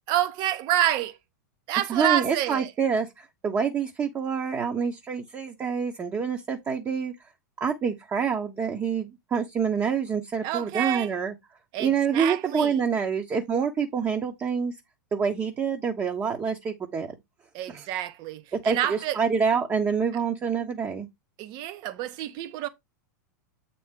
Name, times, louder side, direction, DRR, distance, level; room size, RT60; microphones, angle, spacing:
voice 1, 0.1-1.2 1.7-2.7 10.4-11.1 11.7-12.8 17.5-19.2 21.4-22.7, right 12 dB, 45° right, 1.2 m, -28 dB
voice 2, 1.9-7.1 7.6-11.3 11.8-14.7 15.1-17.1 17.7-17.9 18.6-21.1, right 6 dB, 25° right, 1.2 m, -27 dB
8.3 x 4.3 x 3.7 m
hypercardioid pair, 100°, 10 cm